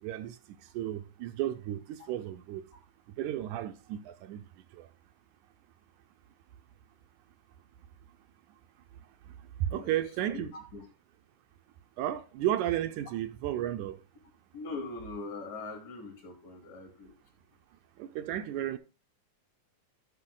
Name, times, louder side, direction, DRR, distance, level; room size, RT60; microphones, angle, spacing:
voice 1, 0.0-2.7 3.2-4.4 4.7-4.9 9.3-9.4 9.6-10.5 12.0-14.0 18.0-18.8, right 12 dB, 80° right, 2.0 m, -33 dB
voice 2, 9.7-10.0 10.3-10.8 14.5-17.2, left 3 dB, 60° left, 3.6 m, -41 dB
11.5 x 5.7 x 3.8 m
omnidirectional pair, 3.6 m